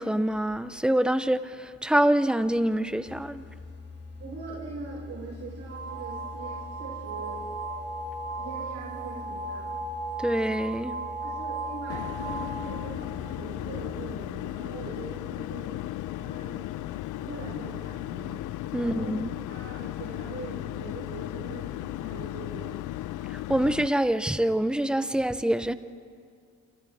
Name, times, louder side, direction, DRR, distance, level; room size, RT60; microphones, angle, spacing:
voice 1, 0.0-3.4 10.2-11.0 18.7-19.3 23.5-25.7, right 1 dB, 5° right, 12 dB, 0.7 m, -25 dB
sound 1, 3.0-14.4, left 3 dB, 50° left, 2.6 m, -44 dB
voice 2, 4.2-7.5 8.4-9.8 11.2-15.8 16.1-16.7 17.2-19.1 19.5-23.0, right 3 dB, 60° right, -7 dB, 5.8 m, -42 dB
sound 2, 5.7-13.2, right 3 dB, 45° right, 3.1 m, -36 dB
sound 3, 11.9-23.9, left 15 dB, 90° left, 0.5 m, -35 dB
27.5 x 27.5 x 3.5 m, 2.3 s
cardioid pair, 90°, 30 cm